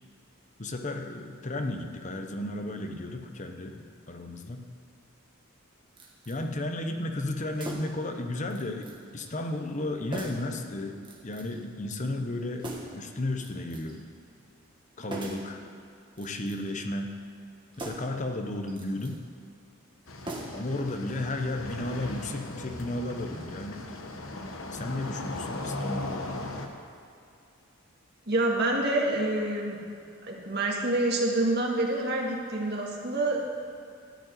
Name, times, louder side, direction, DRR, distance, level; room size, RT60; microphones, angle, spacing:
voice 1, 0.6-4.7 6.3-12.7 12.9-14.1 15.0-15.6 16.2-17.2 17.8-19.2 20.5-23.9 24.7-26.6, left 1 dB, 35° left, 5 dB, 0.8 m, -34 dB
sound 1, 6.0-6.4 7.5-8.1 8.5-9.0 9.2-9.4 10.1-10.5 11.0-11.6 12.6-13.0 13.4-14.0 15.1-15.5 16.1-16.8 17.7-18.2 18.7-19.2 20.2-20.8 21.1-21.2, right 2 dB, 20° right, 1.4 m, -40 dB
sound 2, 20.1-26.7, left 2 dB, 70° left, 1.1 m, -38 dB
voice 2, 28.3-29.8 30.2-33.6, right 2 dB, 50° right, -1 dB, 1.8 m, -27 dB
13.5 x 5.4 x 9.3 m, 2.5 s
head